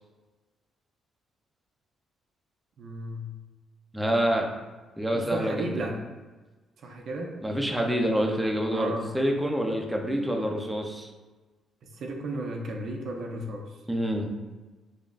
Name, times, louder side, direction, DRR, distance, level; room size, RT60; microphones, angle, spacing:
voice 1, 2.8-3.3 5.1-6.0 6.8-7.5 8.7-9.1 11.8-13.8, right 1 dB, 65° right, 2 dB, 0.5 m, -34 dB
voice 2, 3.9-4.5 5.0-5.9 7.4-11.1 13.9-14.3, equal, 5° right, 1 dB, 0.5 m, -27 dB
4.9 x 2.4 x 2.4 m, 1.3 s
cardioid pair, 90°, 0 cm